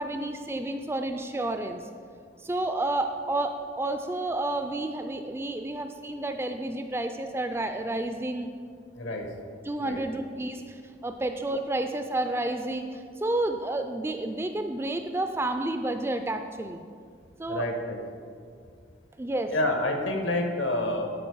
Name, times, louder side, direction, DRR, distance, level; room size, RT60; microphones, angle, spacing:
voice 1, 0.0-1.8 2.4-8.5 9.6-16.9 17.4-17.7 19.2-19.5, right 2 dB, 15° right, 7 dB, 0.3 m, -30 dB
voice 2, 8.9-9.3 9.8-10.0 17.5-18.0 19.5-21.1, left 1 dB, 75° left, 3 dB, 1.2 m, -28 dB
12.0 x 5.2 x 4.7 m, 2.2 s
head